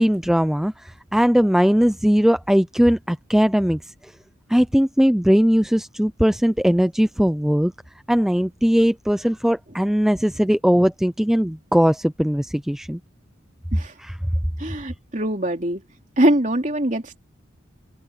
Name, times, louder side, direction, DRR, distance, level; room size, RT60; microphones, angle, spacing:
voice 1, 0.0-4.1 4.5-7.7 8.1-13.0 14.0-14.2, equal, ahead, 0.3 m, -19 dB
voice 2, 14.6-15.8 16.2-17.2, right 1 dB, 40° right, 3.0 m, -22 dB
open air
head